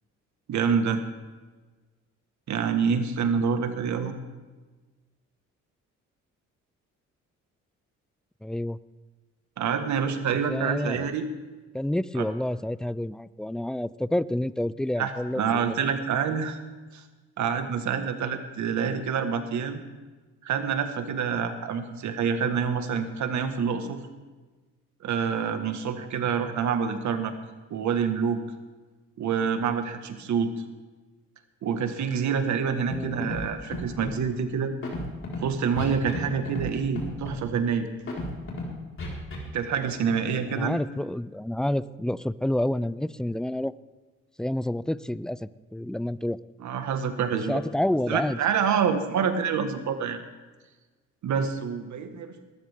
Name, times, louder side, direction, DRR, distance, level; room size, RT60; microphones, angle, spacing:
voice 1, 0.5-1.0 2.5-4.2 9.6-11.3 12.2-12.3 15.0-16.6 16.9-17.0 17.4-19.8 20.4-24.0 25.0-27.3 27.7-28.4 29.2-30.6 31.6-34.7 35.4-37.9 39.5-40.8 46.6-47.6 48.1-50.2 51.2-52.3, right 6 dB, 70° right, 7 dB, 1.6 m, -27 dB
voice 2, 8.4-8.8 10.5-11.1 11.7-15.8 32.7-33.4 40.5-43.7 44.4-46.4 47.5-48.4, left 1 dB, ahead, 18 dB, 0.3 m, -29 dB
Scratching (performance technique), 32.9-33.0 33.2-33.4 33.7-34.1 34.8-35.4 35.8-36.2 36.5-36.7 36.9-37.4 38.1-38.6 39.0-39.4, left 2 dB, 45° left, 4.6 m, -32 dB
19.5 x 14.0 x 3.6 m, 1.3 s
cardioid pair, 90°, 30 cm